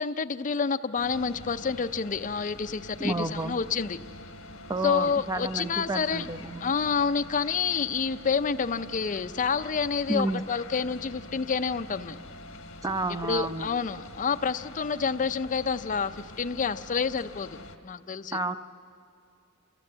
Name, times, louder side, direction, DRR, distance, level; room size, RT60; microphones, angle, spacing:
voice 1, 0.0-4.0 4.8-6.2 6.6-12.2 13.2-17.5 17.8-18.4, left 5 dB, 40° left, 9 dB, 0.5 m, -28 dB
sound 1, 1.0-17.8, left 2 dB, 80° left, 1.2 m, -45 dB
voice 2, 3.0-3.6 4.7-6.7 10.1-10.4 12.8-13.7 18.3-18.6, right 2 dB, 15° right, 11 dB, 0.5 m, -30 dB
28.5 x 15.0 x 7.5 m, 2.5 s
head